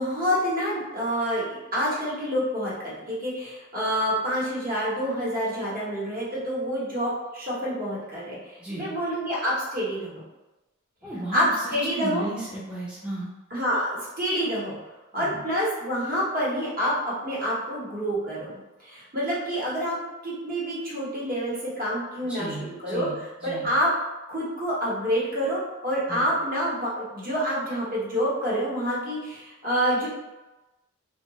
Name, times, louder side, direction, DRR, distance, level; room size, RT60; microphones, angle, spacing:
voice 1, 0.0-10.2 11.3-12.3 13.5-13.9 14.2-14.8 15.1-22.5 22.8-23.1 23.4-23.9 24.3-30.1, equal, 45° right, -6 dB, 0.9 m, -27 dB
voice 2, 8.6-8.9 11.0-11.5 11.9-13.3 15.1-15.4 22.2-23.1 23.4-23.7 26.1-26.3, right 1 dB, 5° right, -8 dB, 0.4 m, -35 dB
2.7 x 2.2 x 2.8 m, 1.0 s
head